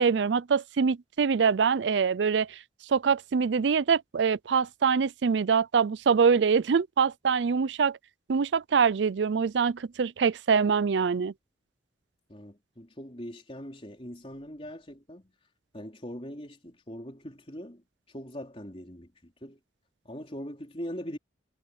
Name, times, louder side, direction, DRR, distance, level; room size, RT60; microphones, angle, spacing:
voice 1, 0.0-2.6 2.9-8.0 8.3-11.3, right 6 dB, 80° right, 0.5 m, -24 dB
voice 2, 12.3-15.3 15.7-17.8 18.1-19.6 20.0-21.2, equal, 30° left, 4.0 m, -41 dB
head